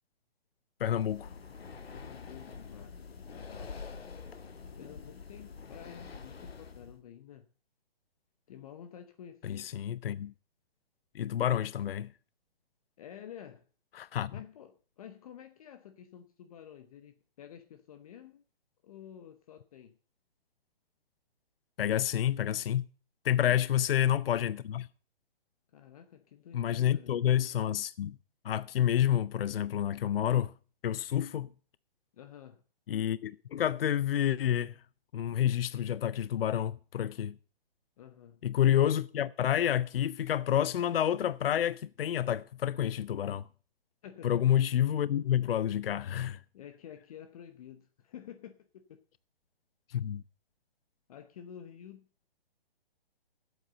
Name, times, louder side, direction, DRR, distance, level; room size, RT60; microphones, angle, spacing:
Breathing, 0.8-7.0, left 5 dB, 90° left, 1.5 m, -46 dB
voice 1, 0.8-1.3 9.4-10.3 11.1-12.1 14.0-14.4 21.8-22.9 23.2-24.9 26.5-28.2 28.4-30.5 30.8-31.5 32.9-34.7 35.1-37.3 38.4-43.4 44.2-46.4 49.9-50.2, left 10 dB, 70° left, 0.6 m, -29 dB
voice 2, 1.9-3.0 3.3-3.7 4.7-7.5 8.5-9.7 13.0-13.6 14.3-18.4 18.8-19.9 25.7-27.2 32.1-32.6 38.0-38.4 44.0-44.5 46.5-49.0 51.1-52.3, left 9 dB, 40° left, 0.8 m, -50 dB
12.5 x 8.2 x 6.7 m
hypercardioid pair, 150°, 30 cm